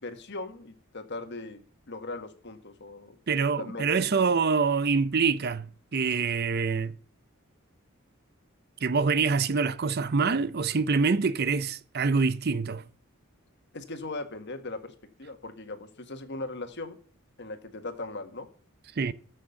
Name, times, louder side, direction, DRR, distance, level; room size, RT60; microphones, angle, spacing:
voice 1, 0.0-3.1 3.6-3.8 4.3-4.4 13.7-17.0 17.4-18.5, left 2 dB, 55° left, 1.7 m, -39 dB
voice 2, 3.3-7.0 8.8-12.8 19.0-19.1, right 5 dB, 50° right, 0.6 m, -25 dB
13.5 x 6.3 x 7.0 m
head